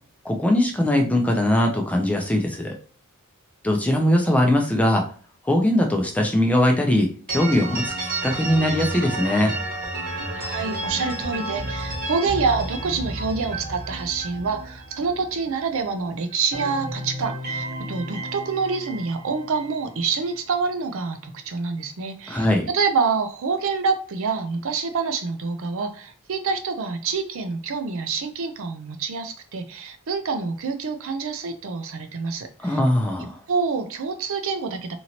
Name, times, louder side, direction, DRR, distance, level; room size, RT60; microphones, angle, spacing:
voice 1, 0.2-2.8 3.6-5.1 5.4-9.5 22.3-22.7 32.6-33.4, left 1 dB, 5° left, 2 dB, 0.4 m, -21 dB
sound 1, 7.3-16.0 16.3-20.4, right 2 dB, 40° right, 1.0 m, -32 dB
voice 2, 10.3-32.8 33.5-35.0, right 4 dB, 65° right, 7 dB, 0.5 m, -27 dB
2.9 x 2.7 x 2.8 m, 0.41 s
head